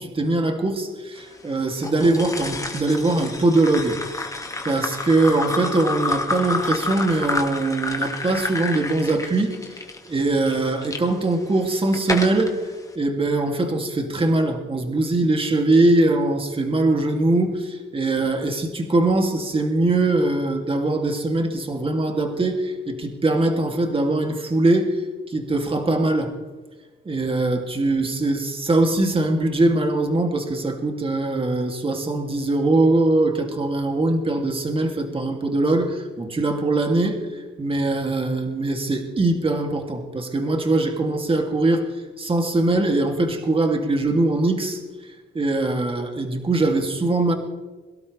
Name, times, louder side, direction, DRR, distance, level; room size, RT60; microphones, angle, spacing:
voice 1, 0.0-4.4 4.6-9.6 10.1-12.6 12.9-26.3 27.0-44.8 45.3-47.3, right 2 dB, 25° right, 3 dB, 2.8 m, -22 dB
sound 1, 1.8-11.0 11.6-12.5, left 2 dB, 15° left, 2.1 m, -29 dB
23.5 x 12.5 x 3.4 m, 1.3 s
cardioid pair, 90°, 20 cm